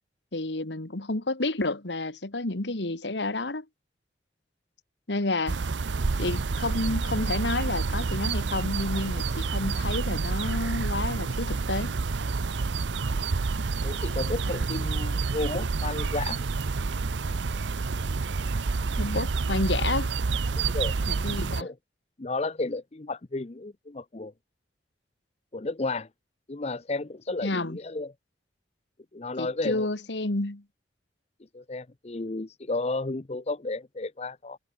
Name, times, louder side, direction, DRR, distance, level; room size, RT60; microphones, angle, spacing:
voice 1, 0.3-3.7 5.1-5.6 6.2-11.9 19.0-20.1 21.1-21.7 27.4-27.8 29.4-30.6, left 2 dB, 80° left, 1.9 m, -30 dB
sound 1, 5.5-21.6, right 4 dB, 85° right, 0.7 m, -28 dB
voice 2, 13.8-16.4 20.5-20.9 21.6-21.7 22.2-24.3 25.5-26.1 26.5-28.1 29.1-29.9 31.5-34.6, left 3 dB, 35° left, 0.7 m, -32 dB
head